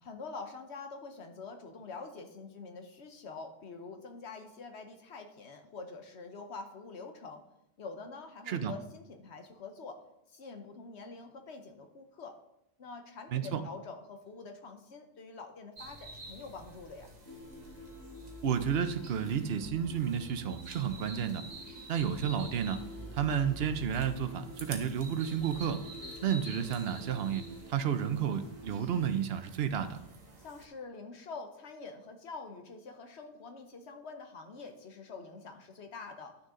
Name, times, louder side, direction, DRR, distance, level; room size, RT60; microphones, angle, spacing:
voice 1, 0.0-7.4 7.8-10.0 10.3-12.4 12.8-17.1 30.4-36.4, left 4 dB, 80° left, 6 dB, 1.3 m, -46 dB
sound 1, 15.8-30.7, right 1 dB, 40° right, 1.2 m, -48 dB
sound 2, 17.3-29.0, left 1 dB, 15° left, 0.7 m, -51 dB
voice 2, 18.4-21.4 21.9-22.8 23.2-25.8 26.2-27.4 27.7-30.0, right 8 dB, 65° right, 9 dB, 0.9 m, -31 dB
11.5 x 6.5 x 3.8 m, 0.82 s
omnidirectional pair, 1.1 m